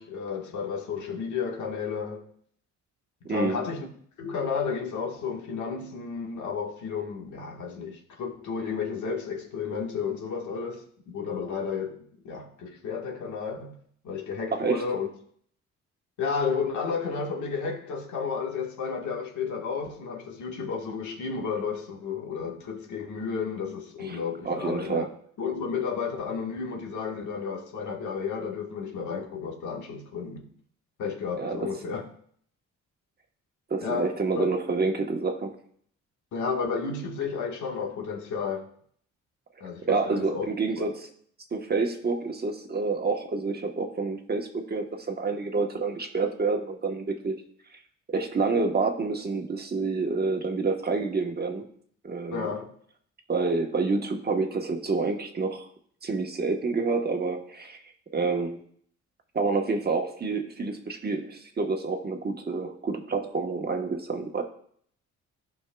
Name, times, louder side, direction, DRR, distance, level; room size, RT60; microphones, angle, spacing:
voice 1, 0.0-2.3 3.2-3.9 4.2-13.7 14.0-15.1 16.2-25.1 25.4-30.5 31.0-32.0 33.8-34.5 36.3-38.7 39.6-40.5 40.8-40.9 52.3-52.7, left 5 dB, 75° left, 1.5 m, -32 dB
voice 2, 3.2-3.6 14.5-14.8 24.1-24.2 24.4-25.1 31.4-31.7 33.7-35.5 39.9-41.1 41.5-47.4 48.1-51.6 52.0-52.5 53.3-55.7 56.0-57.8 58.1-58.6 59.3-64.4, right 4 dB, 30° right, 1.1 m, -28 dB
15.0 x 5.4 x 2.3 m
cardioid pair, 90°, 30 cm